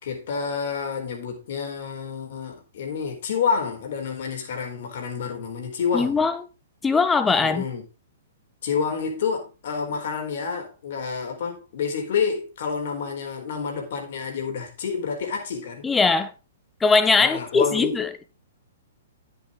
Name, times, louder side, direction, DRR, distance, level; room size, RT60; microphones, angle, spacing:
voice 1, 0.0-6.2 7.4-7.8 8.6-15.9 17.2-18.0, left 6 dB, 60° left, 4.1 m, -29 dB
voice 2, 5.9-6.4 6.8-7.6 15.8-16.3 16.8-18.2, left 4 dB, 10° left, 0.9 m, -20 dB
9.7 x 8.2 x 3.7 m
hypercardioid pair, 140°, 0 cm